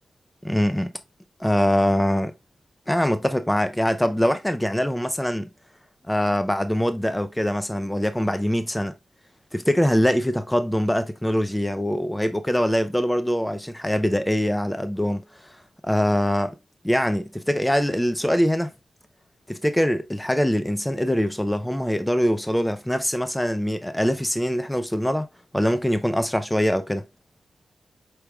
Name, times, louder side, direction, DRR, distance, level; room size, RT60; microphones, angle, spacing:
voice 1, 0.4-0.9 1.4-2.3 2.9-5.5 6.1-8.9 9.5-15.2 15.8-16.6 16.8-18.7 19.5-25.3 25.5-27.1, equal, 10° left, 0.5 m, -23 dB
4.7 x 4.6 x 2.3 m
cardioid pair, 60°, 0 cm